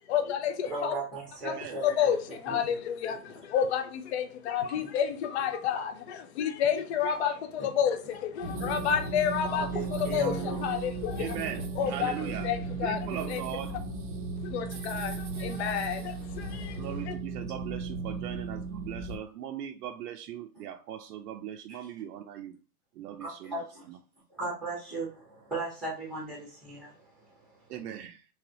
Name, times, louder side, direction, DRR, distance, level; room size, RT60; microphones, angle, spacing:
voice 1, 0.1-0.9 1.5-1.6 1.8-11.4 11.8-13.4 14.4-17.1, left 8 dB, 45° left, 0.5 m, -30 dB
voice 2, 0.7-2.1 2.5-2.8 3.1-3.3 4.7-4.8 7.6-7.7 9.5-10.6 21.7-21.8 23.2-23.8 24.3-27.6, right 3 dB, ahead, 0.8 m, -37 dB
voice 3, 1.4-1.8 11.2-12.5 12.8-13.8 16.8-22.6 23.0-24.0 27.7-28.2, right 10 dB, 80° right, 0.6 m, -39 dB
sound 1, 8.4-19.2, right 4 dB, 35° right, 0.6 m, -36 dB
3.4 x 3.2 x 2.7 m
supercardioid pair, 170°, 47 cm